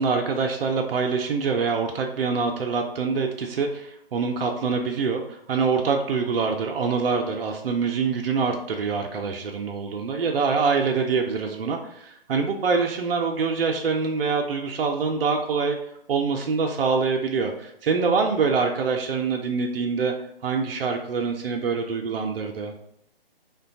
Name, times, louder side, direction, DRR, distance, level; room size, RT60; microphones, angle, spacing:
voice 1, 0.0-15.8 16.1-20.1 20.4-22.7, right 5 dB, 70° right, 3 dB, 0.5 m, -25 dB
3.1 x 2.2 x 2.5 m, 0.74 s
figure-of-eight pair, 145°, 30 cm